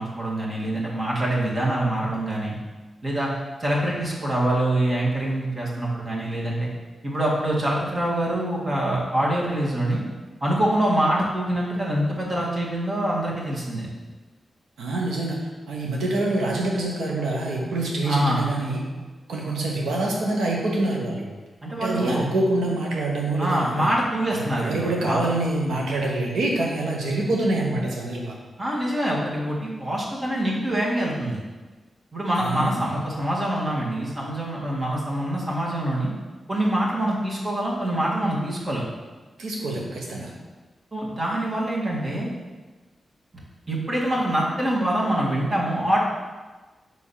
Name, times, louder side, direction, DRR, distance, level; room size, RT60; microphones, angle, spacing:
voice 1, 0.0-2.6 3.0-3.3 3.6-6.7 7.0-10.0 10.4-13.9 18.1-18.4 21.6-22.3 23.4-25.2 28.6-31.4 32.1-36.1 36.5-38.9 40.9-42.3 43.7-46.0, right 1 dB, 45° right, -4 dB, 1.9 m, -25 dB
voice 2, 14.8-18.8 19.3-21.3 21.8-23.9 24.3-28.3 32.4-32.8 39.4-40.3, right 2 dB, 85° right, -1 dB, 1.2 m, -26 dB
4.9 x 3.9 x 5.7 m, 1.3 s
supercardioid pair, 45°, 0 cm